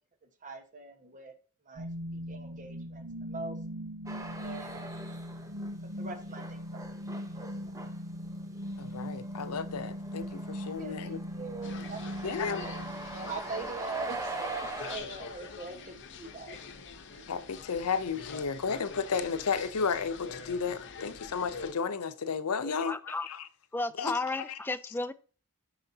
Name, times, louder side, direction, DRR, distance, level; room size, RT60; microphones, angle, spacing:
voice 1, 0.4-1.3 1.7-1.9 2.3-3.6 4.3-5.0 6.0-6.9 7.3-7.8 10.6-12.7 13.1-14.2 14.5-16.6, right 3 dB, 35° right, 1.2 m, -43 dB
sound 1, 1.7-13.7, equal, 65° right, 1.0 m, -40 dB
sound 2, 4.1-5.7 6.0-15.0, right 3 dB, 15° right, 0.9 m, -42 dB
voice 2, 8.8-11.2 12.2-12.6 17.3-23.5 24.0-24.6, left 5 dB, 85° left, 0.6 m, -33 dB
sound 3, 11.6-21.7, left 5 dB, 55° left, 0.8 m, -45 dB
voice 3, 22.6-23.3 23.7-25.1, left 3 dB, 10° left, 0.3 m, -33 dB
9.6 x 6.2 x 2.8 m
head